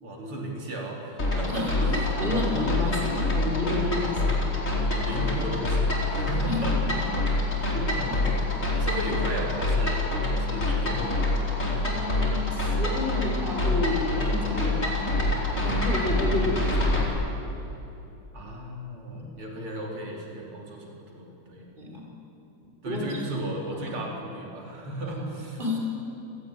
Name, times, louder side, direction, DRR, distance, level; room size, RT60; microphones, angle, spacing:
voice 1, 0.0-1.7 2.3-3.0 4.9-6.8 7.6-11.6 18.3-21.7 22.8-25.6, right 1 dB, 90° right, -1 dB, 4.7 m, -35 dB
sound 1, 1.2-17.0, left 2 dB, 35° left, 4.8 m, -26 dB
voice 2, 1.5-4.5 6.5-6.7 7.7-8.3 11.9-15.3 15.6-17.2 19.1-19.2 21.8-22.0 22.8-23.4 23.7-23.9 25.0-25.8, left 1 dB, 25° right, -1 dB, 5.2 m, -31 dB
29.5 x 17.5 x 9.9 m, 2.9 s
omnidirectional pair, 2.3 m